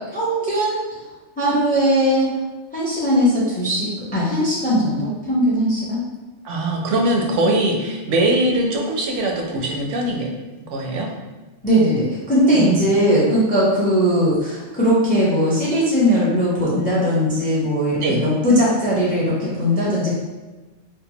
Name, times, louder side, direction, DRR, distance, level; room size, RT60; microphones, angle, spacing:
voice 1, 0.1-0.8 1.4-2.3 2.7-6.0 11.6-20.2, equal, 10° left, -7 dB, 0.4 m, -19 dB
voice 2, 6.4-10.3 10.7-11.1 12.5-12.8 18.0-18.2, right 1 dB, 85° right, 0 dB, 0.9 m, -21 dB
2.8 x 2.1 x 2.7 m, 1.2 s
omnidirectional pair, 1.2 m